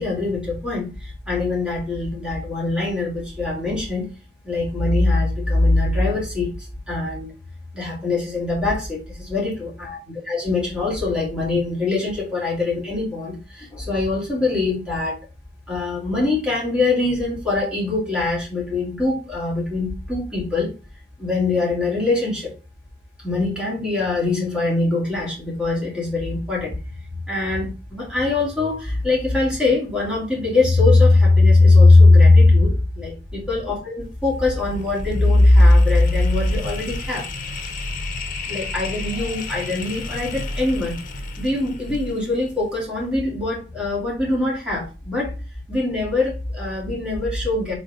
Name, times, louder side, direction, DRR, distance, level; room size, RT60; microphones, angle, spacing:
voice 1, 0.0-4.1 4.4-7.3 7.7-15.2 15.7-20.7 21.2-22.5 23.2-26.8 27.1-37.3 38.5-41.0 41.4-45.3 45.7-47.7, left 2 dB, 5° right, -3 dB, 2.8 m, -20 dB
sound 1, 34.0-43.2, left 2 dB, 50° left, 1.0 m, -32 dB
5.0 x 4.0 x 5.1 m, 0.33 s
head